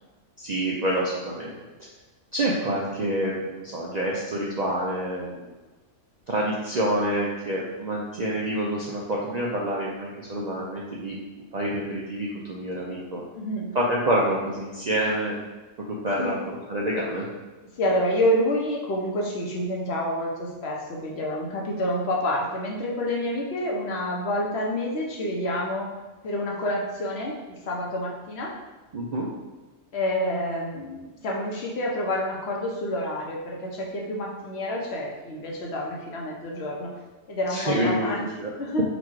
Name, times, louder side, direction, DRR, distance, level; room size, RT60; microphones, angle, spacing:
voice 1, 0.4-1.5 2.3-5.5 6.3-13.2 13.7-15.4 15.8-16.3 16.7-17.3 28.9-29.3 37.5-38.5, right 1 dB, 55° right, -4 dB, 0.4 m, -27 dB
voice 2, 13.3-13.7 16.2-16.4 17.8-25.9 26.2-28.5 29.9-36.9 37.3-38.2 38.6-38.8, left 1 dB, 60° left, -2 dB, 1.0 m, -28 dB
4.0 x 2.3 x 4.6 m, 1.2 s
omnidirectional pair, 1.3 m